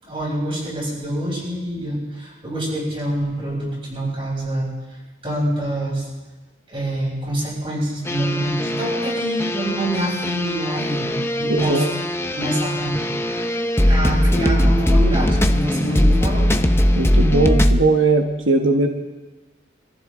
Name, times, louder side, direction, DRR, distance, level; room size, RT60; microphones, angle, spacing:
voice 1, 0.0-4.7 5.2-6.1 6.7-12.0 12.3-13.5 13.9-16.5, right 1 dB, 30° right, -4 dB, 6.9 m, -26 dB
sound 1, 8.0-17.8, left 1 dB, 15° left, 0.7 m, -20 dB
voice 2, 11.5-11.9 16.9-18.9, right 3 dB, 80° right, 3 dB, 1.2 m, -18 dB
25.5 x 14.5 x 3.8 m, 1.2 s
head